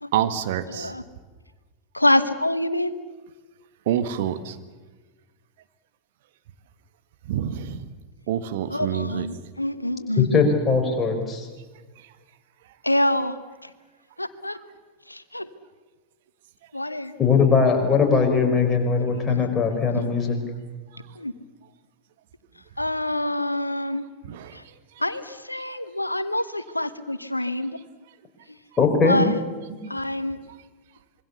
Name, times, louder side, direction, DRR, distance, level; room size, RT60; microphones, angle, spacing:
voice 1, 0.1-0.9 3.9-4.6 7.2-7.9 8.3-9.3 12.0-12.1 19.1-19.2 20.9-21.1 24.2-24.6, right 10 dB, 55° right, 1.7 m, -27 dB
voice 2, 0.7-1.0 1.9-3.0 8.7-10.4 12.8-13.3 13.6-13.7 14.2-14.6 15.1-15.5 16.7-17.1 18.9-19.0 19.3-19.5 20.0-20.1 21.1-21.3 22.8-24.0 24.5-24.6 25.0-27.8 28.5-28.6 29.0-29.4 29.9-30.4, left 1 dB, 85° left, 1.2 m, -26 dB
voice 3, 10.2-11.5 17.2-20.4 28.8-29.2, left 5 dB, 20° left, 5.0 m, -20 dB
26.0 x 23.0 x 7.0 m
figure-of-eight pair, 90°, 0 cm